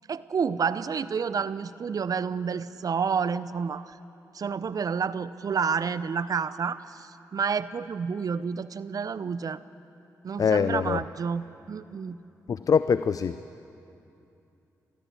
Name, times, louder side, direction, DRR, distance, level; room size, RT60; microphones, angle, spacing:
voice 1, 0.1-4.0 4.3-9.6 10.2-12.2, right 6 dB, 55° right, 15 dB, 0.7 m, -29 dB
voice 2, 10.4-11.0 12.5-13.4, left 6 dB, 55° left, 13 dB, 0.5 m, -23 dB
22.5 x 14.0 x 8.5 m, 2.8 s
supercardioid pair, 45°, 7 cm